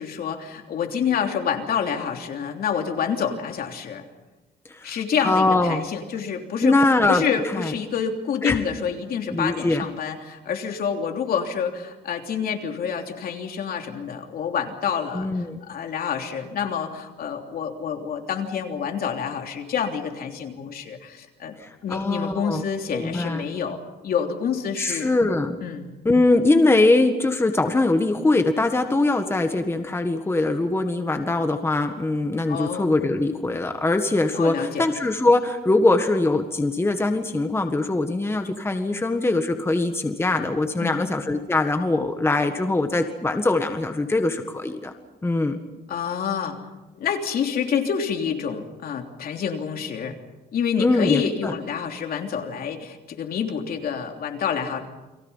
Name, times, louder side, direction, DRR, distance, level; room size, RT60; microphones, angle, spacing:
voice 1, 0.0-4.0 4.8-6.8 7.1-21.6 21.8-25.1 25.6-25.9 32.5-32.9 34.3-34.9 40.8-41.1 45.9-46.6 46.9-50.2 50.5-54.8, left 7 dB, 65° left, 3 dB, 3.2 m, -28 dB
voice 2, 5.2-5.8 6.6-7.2 7.5-7.7 8.4-8.6 9.3-9.8 15.1-15.6 21.6-22.6 22.9-23.4 24.8-25.6 26.0-44.9 45.2-45.6 50.8-51.6, left 2 dB, 15° left, 6 dB, 1.6 m, -22 dB
30.0 x 23.0 x 5.7 m, 1.1 s
cardioid pair, 125°, 17 cm